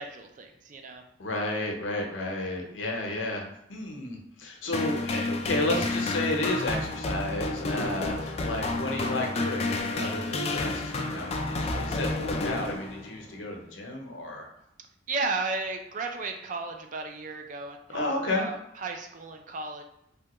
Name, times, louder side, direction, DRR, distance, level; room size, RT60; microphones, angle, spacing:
voice 1, 0.0-1.0 15.1-19.8, right 3 dB, 45° right, 4 dB, 0.4 m, -34 dB
voice 2, 1.2-3.4 3.7-14.4 17.9-18.4, left 2 dB, 80° left, 1 dB, 0.7 m, -32 dB
sound 1, 4.7-13.2, left 2 dB, 35° left, 0.3 m, -30 dB
3.3 x 2.2 x 2.9 m, 0.78 s
head